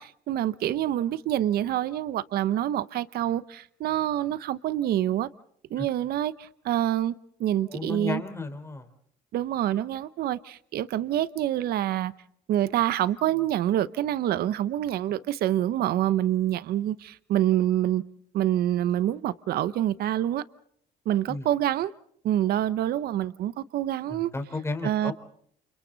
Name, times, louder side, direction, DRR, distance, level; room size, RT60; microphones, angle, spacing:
voice 1, 0.0-5.3 5.7-7.1 7.4-8.2 9.3-12.1 12.5-18.0 18.3-20.4 21.1-21.9 22.2-24.3 24.8-25.1, right 12 dB, 65° right, 0.9 m, -26 dB
voice 2, 7.7-8.9 21.3-21.5 24.1-25.1, left 3 dB, 15° left, 3.9 m, -33 dB
29.5 x 28.5 x 4.0 m
cardioid pair, 110°, 17 cm